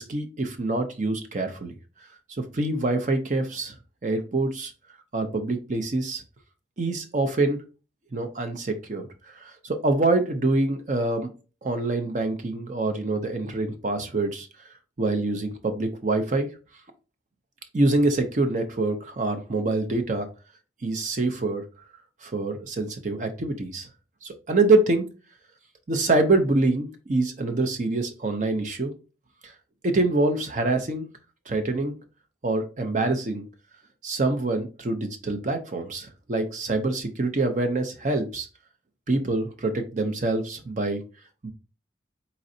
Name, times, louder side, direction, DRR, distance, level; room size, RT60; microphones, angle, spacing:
voice 1, 0.0-1.7 2.4-3.7 4.0-4.7 5.1-6.2 6.8-7.6 8.1-9.1 9.4-11.3 11.6-14.5 15.0-16.5 17.7-20.3 20.8-21.6 22.2-23.9 24.2-25.1 25.9-28.9 29.4-29.5 29.8-31.1 31.5-31.9 32.4-33.4 34.0-38.5 39.1-41.0 41.4-41.5, right 2 dB, 40° right, 7 dB, 0.5 m, -25 dB
4.1 x 3.8 x 2.6 m, 0.33 s
head